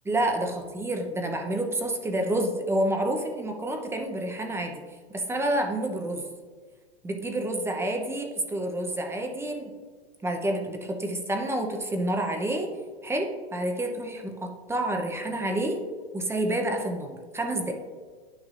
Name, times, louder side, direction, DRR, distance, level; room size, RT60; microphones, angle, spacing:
voice 1, 0.1-4.8 5.1-6.2 7.0-9.7 10.2-12.7 13.0-15.8 16.1-17.7, right 1 dB, 10° right, 3 dB, 0.7 m, -29 dB
10.5 x 6.4 x 2.5 m, 1.5 s
hypercardioid pair, 125°, 31 cm